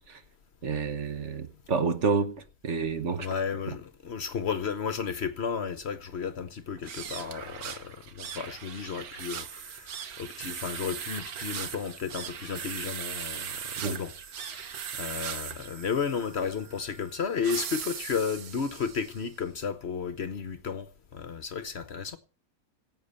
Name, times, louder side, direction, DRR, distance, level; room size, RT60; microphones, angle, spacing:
voice 1, 0.6-2.3 2.6-3.3 13.8-14.0, right 5 dB, 55° right, 1.3 m, -29 dB
voice 2, 3.2-22.2, left 6 dB, 55° left, 1.0 m, -33 dB
sound 1, 6.8-19.3, right 8 dB, 80° right, 1.5 m, -39 dB
17.0 x 8.0 x 5.5 m
omnidirectional pair, 1.5 m